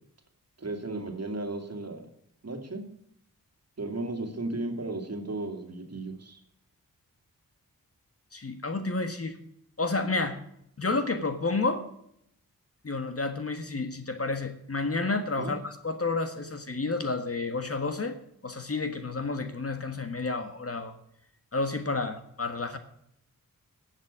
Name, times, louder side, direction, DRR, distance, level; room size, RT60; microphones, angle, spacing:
voice 1, 0.6-2.1 2.4-2.8 3.8-6.4 15.4-15.5, right 2 dB, 45° right, 5 dB, 2.4 m, -35 dB
voice 2, 8.3-9.4 9.8-10.4 10.8-11.8 12.8-18.2 18.4-20.9 21.5-22.8, left 3 dB, 40° left, 8 dB, 1.6 m, -30 dB
11.0 x 7.6 x 8.2 m, 0.72 s
wide cardioid pair, 70°, 35 cm